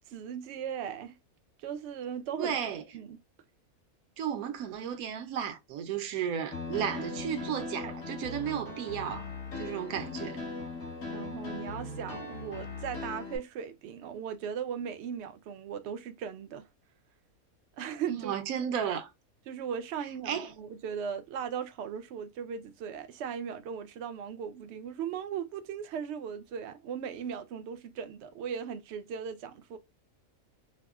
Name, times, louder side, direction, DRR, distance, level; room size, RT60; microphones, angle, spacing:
voice 1, 0.1-1.1 1.6-2.6 2.9-3.2 7.2-7.3 7.8-8.0 11.1-16.7 17.8-18.3 18.6-18.7 19.5-29.8, right 7 dB, 65° right, 0.7 m, -38 dB
voice 2, 2.4-2.8 4.2-9.3 9.6-10.5 18.1-19.1 20.3-20.5, right 8 dB, 80° right, 1.1 m, -34 dB
Piano, 6.5-13.4, left 3 dB, 65° left, 1.7 m, -39 dB
5.8 x 2.1 x 2.3 m
omnidirectional pair, 1.5 m